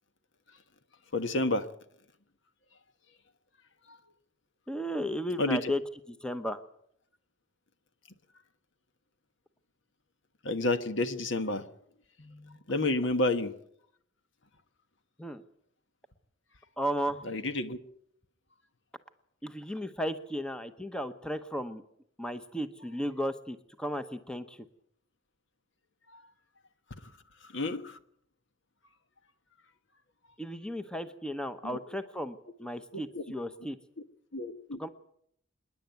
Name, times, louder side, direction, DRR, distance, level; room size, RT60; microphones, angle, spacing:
voice 1, 1.1-1.7 5.4-5.7 10.4-11.7 12.2-13.5 17.2-17.8 27.5-28.0 31.6-31.8 33.1-33.2 34.3-34.8, left 2 dB, 60° left, 1.4 m, -30 dB
voice 2, 4.7-5.8 6.1-6.6 15.2-15.4 16.8-17.3 19.4-21.8 22.2-24.6 30.4-33.8 34.8-34.9, equal, 5° left, 0.9 m, -35 dB
27.0 x 11.0 x 9.3 m
head